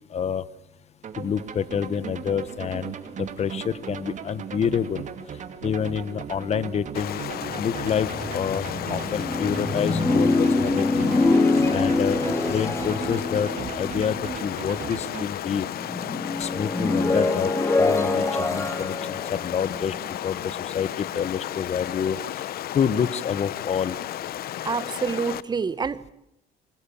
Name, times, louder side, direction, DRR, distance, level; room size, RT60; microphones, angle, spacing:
voice 1, 0.1-0.5 1.2-5.0 5.6-7.2 7.5-11.0 11.7-15.7 16.4-17.5 17.8-19.9 20.2-24.0, left 7 dB, 40° left, 1.1 m, -28 dB
sound 1, 1.0-15.2, right 7 dB, 45° right, 2.6 m, -37 dB
Stream, 6.9-25.4, left 12 dB, 65° left, 1.0 m, -33 dB
sound 2, 7.5-15.1 15.4-20.6, left 2 dB, 15° left, 2.3 m, -25 dB
voice 2, 24.6-26.1, right 5 dB, 25° right, 1.1 m, -27 dB
26.5 x 22.5 x 8.6 m
cardioid pair, 110°, 17 cm